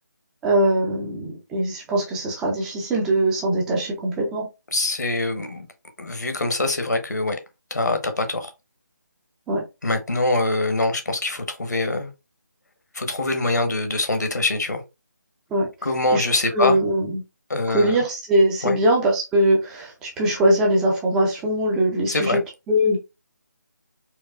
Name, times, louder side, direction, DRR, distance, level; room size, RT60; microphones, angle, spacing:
voice 1, 0.4-4.5 9.5-9.6 15.5-15.7 16.1-16.2 16.5-17.2 17.7-22.4 22.7-23.0, right 1 dB, 5° right, 0.4 m, -21 dB
voice 2, 4.7-5.7 6.0-7.4 7.7-8.5 9.8-12.1 12.9-14.8 15.8-16.8 17.5-18.0 18.6-18.8 22.1-22.4, left 2 dB, 65° left, 0.9 m, -24 dB
4.5 x 2.2 x 2.2 m
figure-of-eight pair, 155°, 10 cm